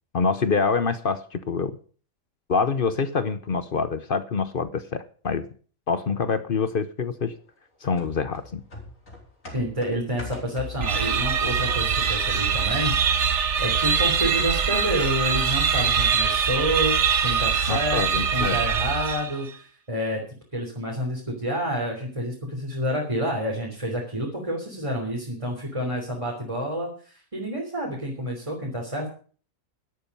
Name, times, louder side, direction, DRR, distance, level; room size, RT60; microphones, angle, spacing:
voice 1, 0.1-1.8 2.5-5.5 5.9-7.3 7.8-8.6 17.7-18.6, left 5 dB, 45° left, 13 dB, 0.9 m, -26 dB
sound 1, 8.0-12.4 12.8-12.9, left 3 dB, 70° left, 4.9 m, -41 dB
voice 2, 9.5-13.0 13.6-17.0 17.2-20.2 20.5-29.1, equal, 20° right, -1 dB, 3.4 m, -29 dB
sound 2, 10.8-19.5, right 6 dB, 55° right, 1.4 m, -23 dB
12.5 x 11.5 x 5.4 m, 0.42 s
omnidirectional pair, 1.5 m